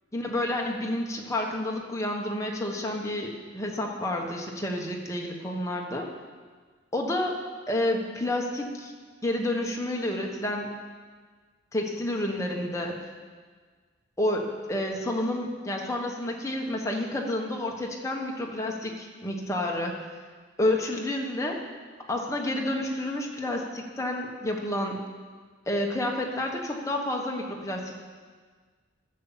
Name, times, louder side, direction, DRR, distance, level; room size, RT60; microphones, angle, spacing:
voice 1, 0.1-6.1 6.9-7.3 7.7-8.9 9.2-10.7 11.7-13.0 14.2-19.9 20.6-21.6 22.1-25.0 25.7-28.0, left 1 dB, 15° left, 0 dB, 1.2 m, -29 dB
11.0 x 7.1 x 7.3 m, 1.5 s
head